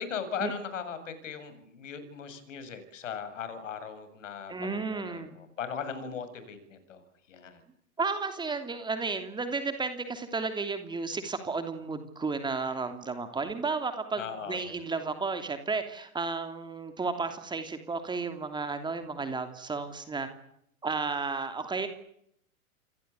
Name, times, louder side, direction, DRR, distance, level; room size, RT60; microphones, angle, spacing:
voice 1, 0.0-7.0 7.3-7.6 14.1-14.7, left 7 dB, 60° left, 11 dB, 7.2 m, -38 dB
voice 2, 4.5-5.4 8.0-20.3 20.8-21.9, right 4 dB, 10° right, 8 dB, 3.0 m, -33 dB
28.5 x 24.0 x 8.4 m, 0.73 s
figure-of-eight pair, 105°, 43 cm